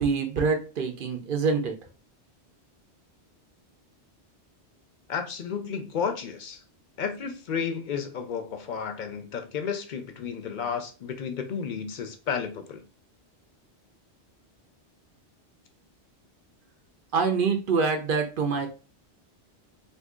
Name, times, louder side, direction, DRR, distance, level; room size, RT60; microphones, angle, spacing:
voice 1, 0.0-1.7 17.1-18.7, right 5 dB, 55° right, 0.7 m, -25 dB
voice 2, 5.1-6.6 7.0-12.8, left 6 dB, 55° left, 0.6 m, -32 dB
2.7 x 2.6 x 3.6 m
omnidirectional pair, 1.1 m